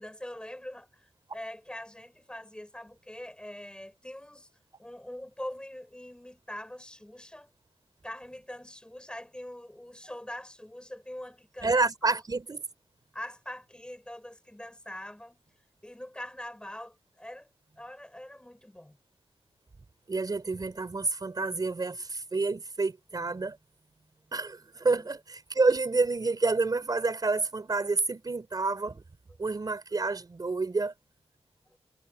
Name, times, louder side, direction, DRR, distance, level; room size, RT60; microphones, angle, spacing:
voice 1, 0.0-4.5 4.8-7.5 8.0-11.7 12.0-12.2 13.1-15.4 15.8-17.5 17.8-19.0 24.9-25.1 31.7-31.8, left 1 dB, 10° left, 5.3 m, -43 dB
voice 2, 11.6-12.6 20.1-23.6 24.3-29.0 29.4-30.9, right 3 dB, 35° right, 3.9 m, -28 dB
wide cardioid pair, 105°, 11 cm